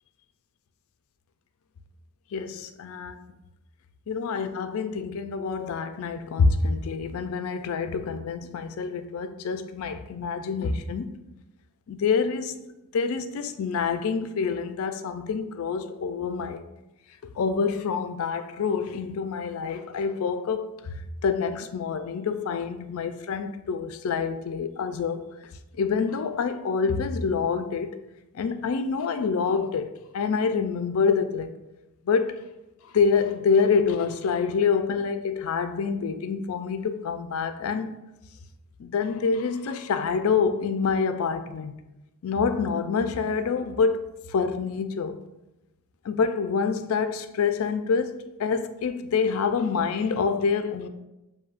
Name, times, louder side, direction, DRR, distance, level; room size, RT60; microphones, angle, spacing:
voice 1, 2.3-3.2 4.1-11.2 11.9-12.6 12.9-16.6 17.2-28.0 28.3-31.5 32.0-32.4 32.8-38.0 38.8-41.7 42.2-45.2 46.0-50.9, left 5 dB, 70° left, 0.3 m, -27 dB
6.9 x 2.7 x 2.4 m
head